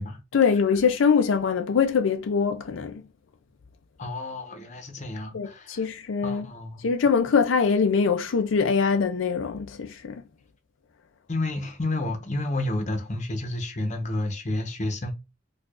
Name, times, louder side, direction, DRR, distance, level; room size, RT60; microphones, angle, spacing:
voice 1, 0.3-3.0 5.3-6.5 6.8-10.2, left 6 dB, 85° left, 0.5 m, -23 dB
voice 2, 4.0-5.9 6.2-6.9 11.3-15.1, left 2 dB, 40° left, 0.8 m, -30 dB
4.6 x 2.4 x 2.4 m
head